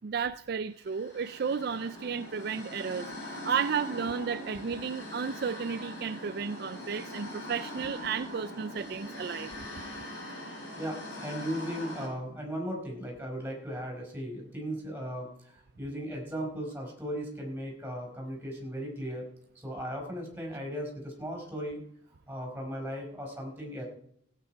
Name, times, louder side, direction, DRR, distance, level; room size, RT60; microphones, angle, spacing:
voice 1, 0.0-9.5, right 6 dB, 55° right, 12 dB, 0.4 m, -33 dB
sound 1, 0.8-12.1, left 1 dB, 70° left, 6.9 m, -42 dB
voice 2, 10.8-19.2 19.5-21.8 22.3-23.9, equal, 10° right, -1 dB, 4.9 m, -37 dB
16.5 x 9.1 x 4.6 m, 0.68 s
head